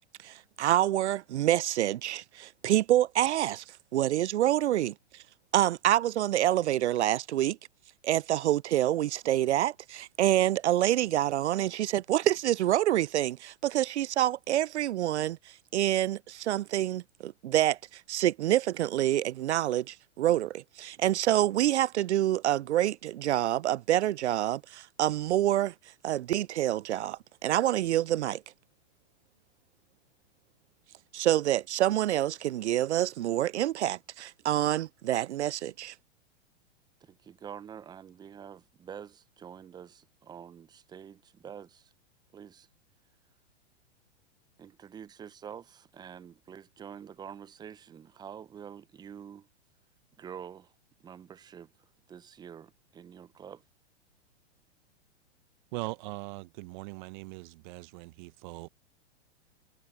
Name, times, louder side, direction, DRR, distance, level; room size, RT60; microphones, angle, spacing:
voice 1, 0.2-3.6 3.9-4.9 5.5-7.6 8.0-25.7 26.0-28.4 31.1-35.9, right 13 dB, 80° right, 0.5 m, -27 dB
voice 2, 37.0-41.9 42.3-42.7 44.6-49.5 50.2-50.7 51.0-51.7 52.1-53.6, right 8 dB, 10° right, 0.5 m, -47 dB
voice 3, 55.7-58.7, right 23 dB, 45° right, 0.7 m, -40 dB
hypercardioid pair, 115°, 34 cm